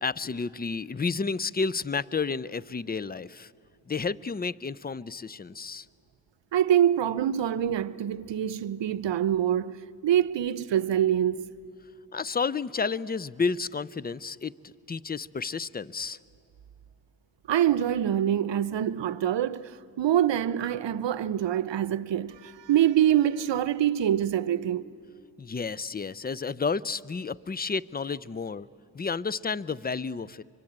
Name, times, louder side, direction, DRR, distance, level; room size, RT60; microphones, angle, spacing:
voice 1, 0.0-3.5 3.9-5.9 12.1-16.2 25.4-28.7 28.9-30.4, left 5 dB, 20° left, 0.5 m, -31 dB
voice 2, 6.5-9.8 10.0-11.5 17.5-19.7 20.0-24.8, right 10 dB, 70° right, 0.8 m, -25 dB
25.0 x 23.5 x 8.8 m
cardioid pair, 50°, 45 cm